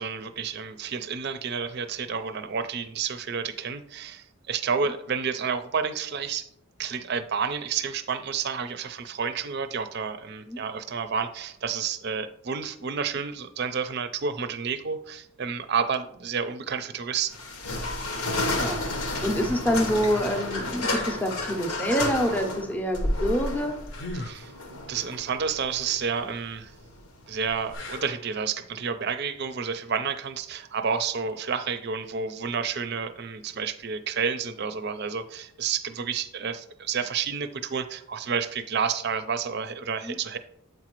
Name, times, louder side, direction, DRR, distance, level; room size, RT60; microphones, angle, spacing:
voice 1, 0.0-6.5 6.8-17.4 24.1-24.5 24.9-26.7 27.3-40.4, right 6 dB, 50° right, 11 dB, 0.5 m, -30 dB
sound 1, 17.3-27.7, left 2 dB, 90° left, 1.1 m, -31 dB
voice 2, 18.6-23.7 40.0-40.1, equal, 10° left, 4 dB, 0.6 m, -27 dB
sound 2, 20.8-21.3 23.9-24.4 27.7-28.3 31.3-31.4, left 2 dB, 55° left, 0.7 m, -38 dB
7.9 x 4.9 x 3.0 m, 0.70 s
head